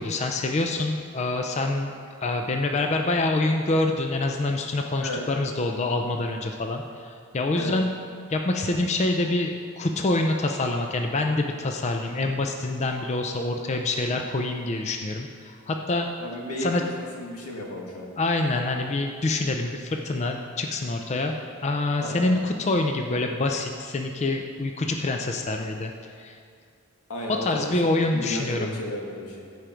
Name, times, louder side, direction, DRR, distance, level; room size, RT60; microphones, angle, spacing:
voice 1, 0.0-1.9 2.2-7.9 8.3-16.1 16.6-16.8 18.2-21.3 21.6-25.9 26.2-26.4 27.4-28.8, left 2 dB, 30° left, 3 dB, 0.4 m, -26 dB
voice 2, 16.2-18.1 22.0-22.3 27.1-29.4, left 1 dB, 90° left, -2 dB, 1.7 m, -33 dB
14.0 x 5.0 x 4.5 m, 2.3 s
head